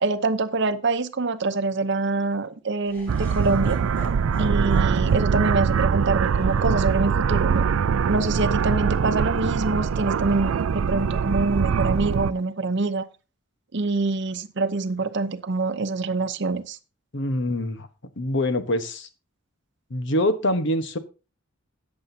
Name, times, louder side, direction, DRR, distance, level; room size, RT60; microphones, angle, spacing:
voice 1, 0.0-3.8 4.4-7.6 8.1-13.1 13.7-16.8, right 3 dB, 55° right, 0.8 m, -25 dB
Laughter, 2.8-9.0, equal, 10° left, 4.7 m, -44 dB
sound 1, 3.1-12.3, right 6 dB, 75° right, 0.4 m, -23 dB
voice 2, 17.1-17.9 18.2-19.1 19.9-21.0, left 1 dB, 60° left, 1.1 m, -24 dB
14.0 x 8.8 x 2.8 m
head